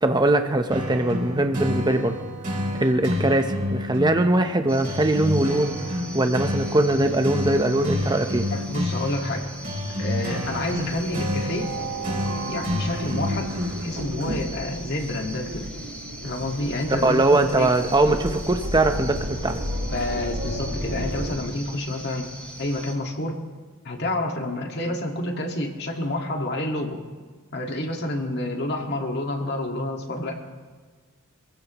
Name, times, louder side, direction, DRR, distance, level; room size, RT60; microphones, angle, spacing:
voice 1, 0.0-2.2 2.7-8.5 17.0-19.6, right 2 dB, 20° right, 6 dB, 0.9 m, -21 dB
sound 1, 0.7-14.2, left 1 dB, 40° right, 3.8 m, -29 dB
sound 2, 4.7-22.9, equal, 5° left, 3.3 m, -41 dB
voice 2, 8.5-9.5 10.0-11.7 12.4-13.6 13.8-15.7 16.2-17.7 19.9-22.3 22.6-23.4 23.8-27.0 27.5-30.4, left 1 dB, 50° left, 2 dB, 1.9 m, -29 dB
sound 3, 10.1-21.3, right 1 dB, 90° right, 2.5 m, -33 dB
26.0 x 15.5 x 3.1 m, 1.5 s
head